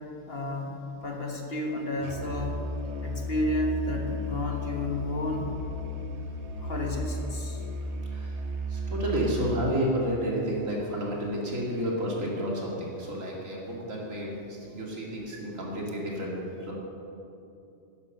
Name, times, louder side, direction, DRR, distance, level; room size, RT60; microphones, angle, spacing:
voice 1, 0.3-0.7 1.0-2.5 3.0-5.5 6.6-7.6, left 1 dB, 50° left, 1 dB, 1.6 m, -31 dB
Musical instrument, 2.0-9.8, left 1 dB, 60° right, 1.2 m, -34 dB
voice 2, 8.0-8.4 8.7-16.7, equal, 75° right, -3 dB, 2.7 m, -31 dB
11.0 x 10.5 x 6.6 m, 2.8 s
omnidirectional pair, 1.4 m